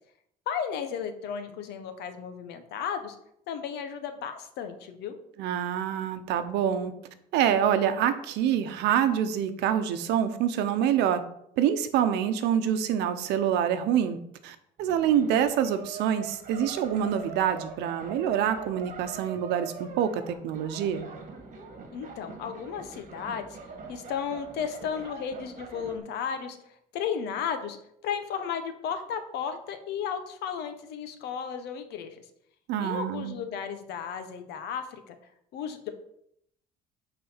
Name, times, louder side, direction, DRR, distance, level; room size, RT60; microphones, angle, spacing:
voice 1, 0.5-3.2 3.5-5.1 21.9-23.6 23.9-26.6 26.9-27.8 28.0-32.2 32.8-35.2 35.5-35.9, left 7 dB, 80° left, 8 dB, 1.1 m, -34 dB
voice 2, 5.4-6.9 7.3-11.2 11.6-14.2 14.4-21.1 32.7-33.4, right 9 dB, 90° right, 10 dB, 0.8 m, -26 dB
sound 1, 14.8-26.0, right 5 dB, 50° right, 1.7 m, -43 dB
8.8 x 4.1 x 5.6 m, 0.73 s
cardioid pair, 110°, 17 cm